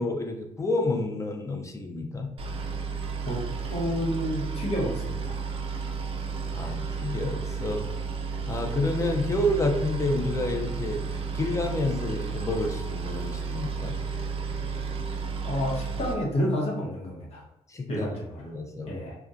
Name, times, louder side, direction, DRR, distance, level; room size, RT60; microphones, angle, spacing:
voice 1, 0.0-2.3 6.5-7.8 8.5-11.0 11.3-14.0 17.7-18.1 18.4-18.9, left 2 dB, 25° left, 3 dB, 0.4 m, -29 dB
Boat Water vehicle, 2.4-16.1, right 5 dB, 45° right, 0.4 m, -32 dB
voice 2, 3.2-5.4 15.4-17.4 17.9-18.4 18.9-19.2, equal, 50° left, -3 dB, 0.9 m, -30 dB
2.5 x 2.2 x 2.4 m, 0.84 s
cardioid pair, 80°, 13 cm